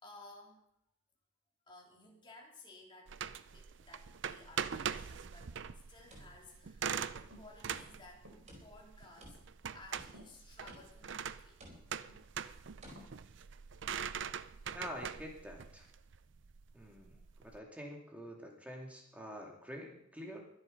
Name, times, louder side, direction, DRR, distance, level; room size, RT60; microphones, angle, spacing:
voice 1, 0.0-0.6 1.7-3.2 3.5-8.3 8.6-9.4 9.7-11.6 17.1-17.2, left 2 dB, 25° left, -1 dB, 3.4 m, -57 dB
sound 1, 3.1-17.6, right 7 dB, 60° right, 0.5 m, -43 dB
sound 2, 5.9-7.4 7.7-8.2 8.5-9.6 9.9-10.4 10.7-11.1 11.6-12.1 12.8-13.0, equal, 35° right, 4.6 m, -56 dB
sound 3, 7.3-7.6 8.3-8.5 9.2-9.3 10.1-10.3 11.1-11.3 12.1-12.5 12.8-13.3 13.8-14.1, right 1 dB, 80° right, 3.3 m, -57 dB
voice 2, 14.7-15.8 16.7-17.1 17.4-20.4, equal, 5° right, 1 dB, 2.5 m, -47 dB
23.0 x 8.1 x 5.4 m, 0.74 s
head